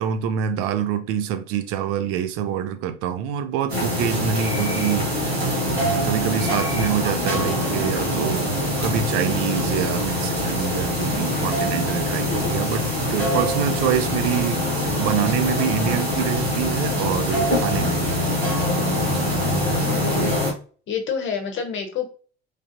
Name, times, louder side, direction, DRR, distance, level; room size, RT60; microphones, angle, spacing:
voice 1, 0.0-8.5 8.8-18.2, right 9 dB, 50° right, 0.4 m, -26 dB
sound 1, 3.7-20.5, equal, 85° right, 0.9 m, -23 dB
voice 2, 11.1-11.5 19.8-20.5 20.9-22.1, left 6 dB, 40° left, 0.8 m, -29 dB
3.2 x 2.4 x 2.5 m
figure-of-eight pair, 60°, 30 cm